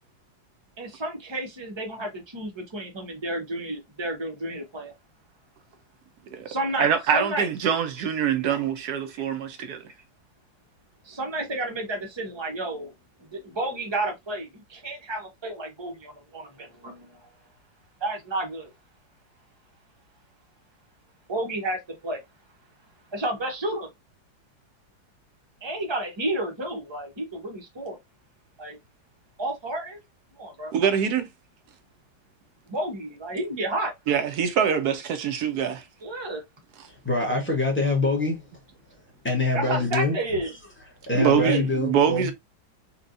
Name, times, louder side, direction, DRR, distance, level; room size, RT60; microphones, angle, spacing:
voice 1, 0.8-4.9 6.5-7.5 8.4-8.6 9.2-9.3 11.0-12.9 13.3-17.2 18.0-18.7 21.3-22.2 23.1-23.9 25.6-28.0 28.6-28.8 29.4-30.0 30.4-30.7 32.7-33.9 36.0-36.4 39.5-40.5 41.2-41.6, right 1 dB, 25° right, 0.6 m, -31 dB
voice 2, 6.8-9.8 30.7-31.3 34.1-35.8 41.1-42.3, right 8 dB, 70° right, 1.0 m, -24 dB
voice 3, 36.9-38.5 39.2-40.2 40.4-40.6 41.1-42.3, left 2 dB, 10° left, 0.7 m, -25 dB
4.3 x 2.3 x 2.6 m
omnidirectional pair, 2.1 m